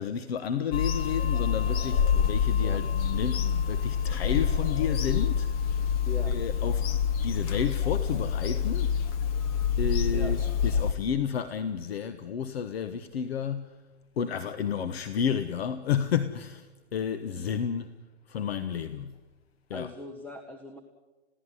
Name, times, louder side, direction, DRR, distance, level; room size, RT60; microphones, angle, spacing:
voice 1, 0.0-5.8 6.3-6.9 7.2-8.9 9.8-13.7 14.2-18.0 18.3-19.2 19.7-19.9, left 7 dB, 60° left, 1.3 m, -31 dB
Bird vocalization bird call bird song / Telephone, 0.7-10.9, left 7 dB, 30° left, 1.3 m, -27 dB
voice 2, 19.7-20.8, left 1 dB, 5° left, 0.9 m, -40 dB
22.0 x 16.5 x 9.9 m
hypercardioid pair, 150°, 36 cm